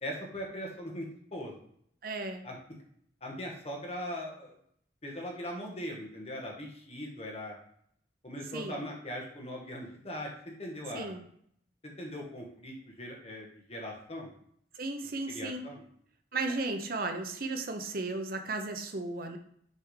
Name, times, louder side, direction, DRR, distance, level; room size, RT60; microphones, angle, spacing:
voice 1, 0.0-1.5 2.4-2.6 3.2-4.5 5.0-7.5 8.2-11.2 11.8-14.3 15.3-15.8, equal, 35° left, 0 dB, 1.5 m, -40 dB
voice 2, 2.0-2.4 8.5-8.8 10.9-11.3 14.8-15.7 16.3-19.4, right 2 dB, 50° right, 5 dB, 0.9 m, -35 dB
6.7 x 3.6 x 4.8 m, 0.66 s
head